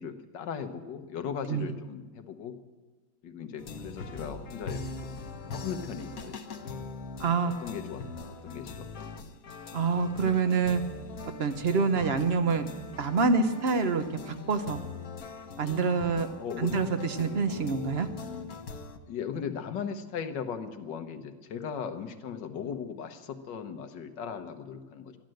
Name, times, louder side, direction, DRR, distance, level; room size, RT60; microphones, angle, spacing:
voice 1, 0.0-2.6 3.2-5.2 5.5-6.6 7.4-9.3 16.4-16.7 19.1-25.2, left 7 dB, 75° left, 8 dB, 1.7 m, -38 dB
sound 1, 3.6-19.0, left 4 dB, 55° left, 1.3 m, -41 dB
voice 2, 7.2-7.5 9.7-10.8 11.4-12.6 13.0-14.8 15.6-16.3 16.6-18.1, right 4 dB, 45° right, 9 dB, 0.8 m, -26 dB
13.0 x 11.5 x 7.7 m, 1.3 s
omnidirectional pair, 1.9 m